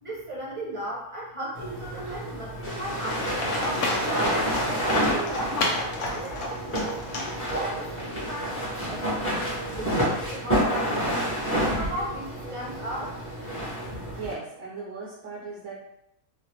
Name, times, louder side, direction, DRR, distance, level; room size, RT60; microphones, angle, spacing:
voice 1, 0.0-11.2 11.7-13.2, right 1 dB, 25° right, -7 dB, 0.8 m, -37 dB
sound 1, 1.5-14.3, equal, 10° left, 1.1 m, -29 dB
Livestock farm animals working animals, 3.1-8.0, left 2 dB, 65° left, 0.9 m, -31 dB
voice 2, 13.6-15.8, right 4 dB, 70° right, -5 dB, 1.1 m, -38 dB
3.1 x 2.5 x 2.9 m, 0.80 s
omnidirectional pair, 1.5 m